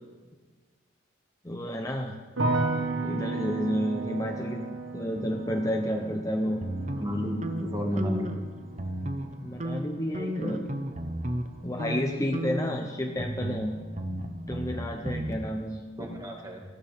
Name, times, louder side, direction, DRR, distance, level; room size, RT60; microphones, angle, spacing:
voice 1, 1.4-2.2 3.0-6.6 9.4-10.7 11.6-13.8 14.5-15.8, equal, 15° left, 2 dB, 0.8 m, -31 dB
sound 1, 2.4-13.4 13.7-14.4, right 2 dB, 85° right, 1.6 m, -35 dB
sound 2, 6.6-8.5 8.7-9.3 9.6-11.5 11.8-12.0 12.3-15.3, right 1 dB, 35° right, 1.0 m, -34 dB
voice 2, 7.0-8.3 15.0-15.4 16.0-16.6, equal, 20° right, 0 dB, 2.1 m, -32 dB
19.0 x 14.5 x 3.6 m, 1.4 s
head